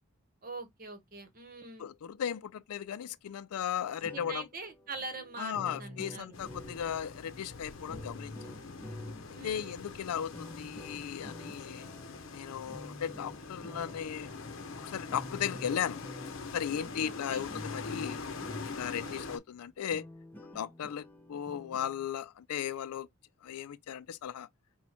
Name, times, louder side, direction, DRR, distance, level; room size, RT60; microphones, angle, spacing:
voice 1, 0.4-1.9 4.1-6.4 9.3-9.8 16.8-17.5 18.9-19.4, right 3 dB, 40° right, 1.0 m, -44 dB
voice 2, 1.8-4.4 5.4-8.5 9.4-11.9 12.3-14.3 14.8-16.0 16.5-18.2 18.6-20.1 20.5-23.1 23.4-24.5, left 9 dB, 85° left, 0.4 m, -36 dB
sound 1, 3.9-19.1 19.5-19.6 19.9-22.1, left 1 dB, 10° left, 0.7 m, -49 dB
sound 2, 6.3-19.4, left 4 dB, 60° left, 0.8 m, -44 dB
4.3 x 2.2 x 4.3 m
head